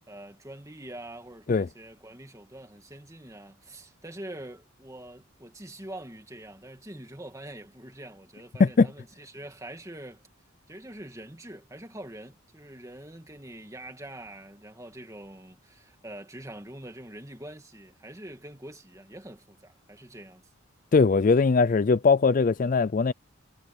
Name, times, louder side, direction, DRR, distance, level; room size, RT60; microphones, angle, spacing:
voice 1, 0.0-10.2 10.7-20.4, right 1 dB, 15° right, 2.3 m, -44 dB
voice 2, 20.9-23.1, left 4 dB, 40° left, 0.4 m, -20 dB
head